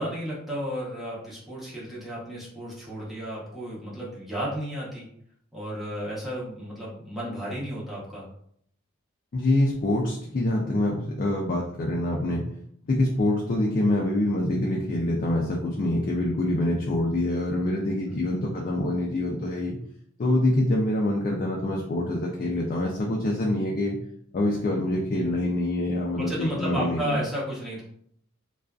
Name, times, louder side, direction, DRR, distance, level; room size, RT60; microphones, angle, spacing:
voice 1, 0.0-5.1 5.5-8.3 18.0-18.3 26.3-27.8, equal, ahead, -8 dB, 0.8 m, -33 dB
voice 2, 9.3-12.4 12.8-19.8 20.2-24.0 24.3-27.2, left 1 dB, 40° left, -2 dB, 0.4 m, -25 dB
2.4 x 2.3 x 2.3 m, 0.67 s
head